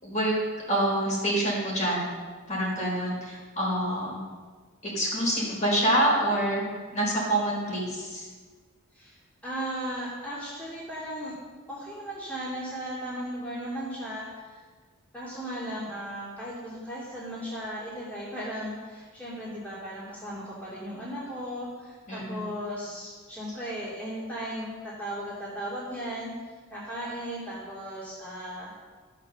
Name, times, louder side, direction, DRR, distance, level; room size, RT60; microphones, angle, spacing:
voice 1, 0.0-0.4 0.7-2.1 2.5-4.2 4.8-6.6 6.9-8.3 22.1-22.5, right 1 dB, 35° left, -3 dB, 4.6 m, -26 dB
voice 2, 9.4-11.3 11.7-14.6 15.1-26.3 26.7-28.7, equal, 5° left, -8 dB, 2.8 m, -36 dB
14.5 x 6.6 x 6.9 m, 1.4 s
head